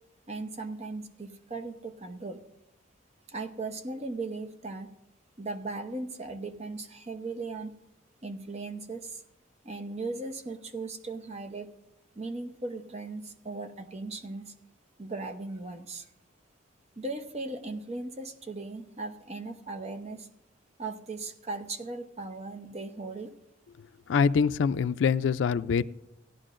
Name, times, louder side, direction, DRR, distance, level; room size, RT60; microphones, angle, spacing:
voice 1, 0.3-2.4 3.3-4.9 5.4-7.7 8.2-9.2 9.6-11.7 12.2-14.5 15.0-16.1 17.0-20.3 20.8-23.3, right 3 dB, 35° right, 6 dB, 0.8 m, -37 dB
voice 2, 24.1-25.8, left 6 dB, 70° left, 13 dB, 0.3 m, -24 dB
17.5 x 10.5 x 2.5 m, 0.87 s
head